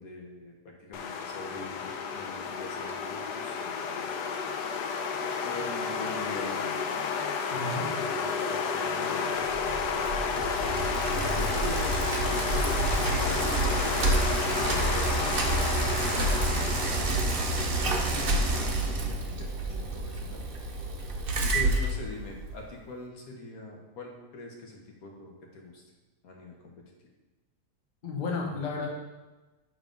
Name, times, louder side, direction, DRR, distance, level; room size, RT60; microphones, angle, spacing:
voice 1, 0.0-4.1 5.4-6.7 7.6-9.7 9.9-10.6 11.3-15.5 16.0-17.5 18.0-20.4 21.4-25.8 26.2-26.5, left 2 dB, 60° left, 0 dB, 1.4 m, -44 dB
sound 1, 0.9-18.7, left 5 dB, 80° left, 1.2 m, -31 dB
voice 2, 7.5-7.9 21.5-21.7 28.0-28.9, left 4 dB, 35° left, -1 dB, 0.9 m, -33 dB
Bicycle, 9.5-22.6, right 2 dB, 50° right, 0.7 m, -29 dB
7.1 x 3.7 x 5.2 m, 1.2 s
omnidirectional pair, 1.8 m